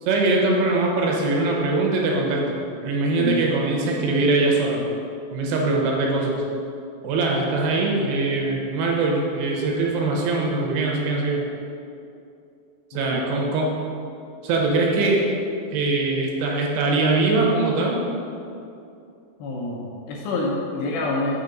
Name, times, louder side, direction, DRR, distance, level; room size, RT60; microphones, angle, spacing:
voice 1, 0.0-4.8 5.3-6.4 7.0-11.4 12.9-13.7 14.4-15.2 15.7-18.0, right 3 dB, 80° right, -1 dB, 2.9 m, -22 dB
voice 2, 12.9-13.5 19.4-21.3, left 2 dB, 85° left, -2 dB, 2.1 m, -27 dB
6.9 x 4.5 x 5.1 m, 2.6 s
omnidirectional pair, 5.0 m